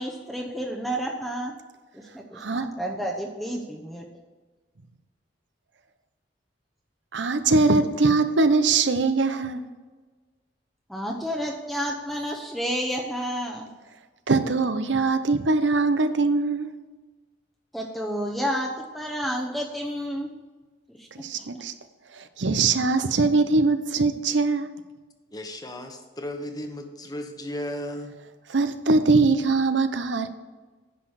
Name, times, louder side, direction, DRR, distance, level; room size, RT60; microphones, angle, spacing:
voice 1, 0.0-1.5 1.9-4.1 10.9-13.7 17.7-20.3 20.9-21.1 21.3-21.4, equal, ahead, 0.8 m, -30 dB
voice 2, 2.4-2.7 7.1-9.6 14.3-16.7 21.1-21.7 22.1-24.7 28.5-30.3, right 3 dB, 85° right, 0.8 m, -22 dB
voice 3, 25.3-28.1, left 1 dB, 20° left, 1.1 m, -35 dB
10.0 x 5.9 x 6.4 m
head